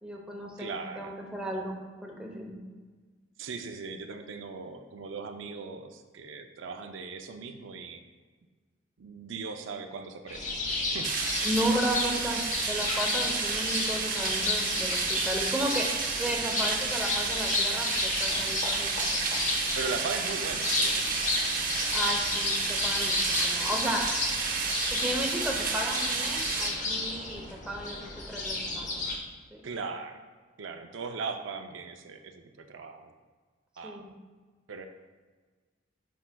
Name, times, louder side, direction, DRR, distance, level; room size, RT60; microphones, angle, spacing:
voice 1, 0.0-2.6 11.4-15.9 16.2-19.1 21.9-24.1 24.9-28.9 29.5-29.6 33.8-34.1, equal, 5° right, -1 dB, 0.7 m, -34 dB
voice 2, 0.6-1.1 3.4-8.0 9.0-11.3 16.4-16.7 19.7-21.4 25.5-25.6 29.6-30.2 30.6-33.1 33.8-34.1 34.7-34.9, right 4 dB, 75° right, 6 dB, 0.5 m, -39 dB
sound 1, 10.3-29.2, left 2 dB, 40° left, 0.9 m, -32 dB
sound 2, 11.0-26.7, right 4 dB, 45° right, 0.9 m, -31 dB
10.0 x 4.6 x 2.2 m, 1.4 s
head